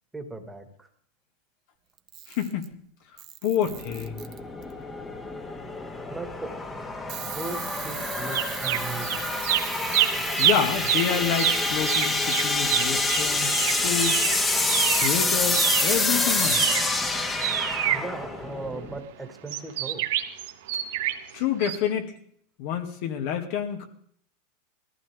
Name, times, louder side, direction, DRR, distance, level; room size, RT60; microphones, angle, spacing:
voice 1, 0.1-0.9 6.1-6.5 7.3-9.2 17.9-20.1, right 3 dB, 10° right, 5 dB, 1.8 m, -37 dB
Camera, 2.0-2.7 3.2-4.7 7.1-15.8, right 14 dB, 45° right, 1.0 m, -39 dB
voice 2, 2.3-2.7 3.4-4.3 10.4-13.5 13.8-14.2 14.9-16.6 21.3-22.1 22.6-23.9, left 8 dB, 60° left, 5 dB, 1.9 m, -28 dB
sound 1, 3.6-19.0, left 2 dB, 15° left, 1.4 m, -27 dB
sound 2, 8.3-9.2 9.4-15.2 15.5-18.7 19.5-21.3 21.6-21.8, right 12 dB, 75° right, 1.3 m, -27 dB
19.5 x 14.5 x 3.5 m, 0.63 s
supercardioid pair, 130°, 0 cm